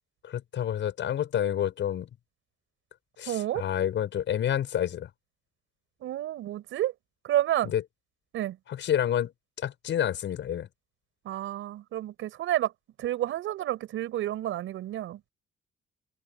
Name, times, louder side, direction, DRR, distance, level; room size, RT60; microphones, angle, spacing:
voice 1, 0.2-2.1 3.2-5.1 7.6-7.8 8.7-10.7, left 10 dB, 70° left, 7.0 m, -29 dB
voice 2, 3.3-3.6 6.0-6.9 7.2-7.7 8.3-8.6 11.2-12.7 13.0-15.2, right 13 dB, 85° right, 6.3 m, -30 dB
open air
cardioid pair, 90°, 20 cm